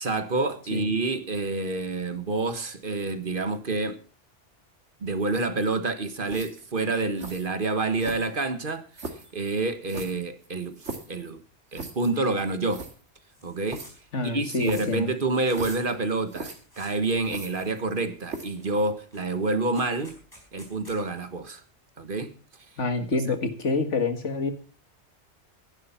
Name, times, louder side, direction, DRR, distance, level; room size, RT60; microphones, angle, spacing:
voice 1, 0.0-4.0 5.0-11.4 11.7-12.9 13.4-13.8 14.2-20.2 20.5-21.6 22.0-22.3, right 3 dB, 45° right, 1.5 m, -28 dB
sound 1, 6.3-6.7 7.2-7.5 8.0-8.5 8.9-9.3 9.9-11.2 11.7-12.1 12.4-12.5 12.7-12.9 13.7-13.9 14.6-15.0 15.5-15.9 16.3-16.6 17.2-17.9 18.3-18.6, right 3 dB, 80° right, 2.5 m, -39 dB
sound 2, 13.3-14.0 14.2-15.0 15.3-15.8 16.3-17.2 17.5-18.1 18.6-18.7 19.0-21.0, equal, 20° left, 5.0 m, -50 dB
voice 2, 14.1-15.1 22.8-24.5, left 3 dB, 85° left, 2.2 m, -27 dB
14.5 x 11.0 x 5.7 m
omnidirectional pair, 1.2 m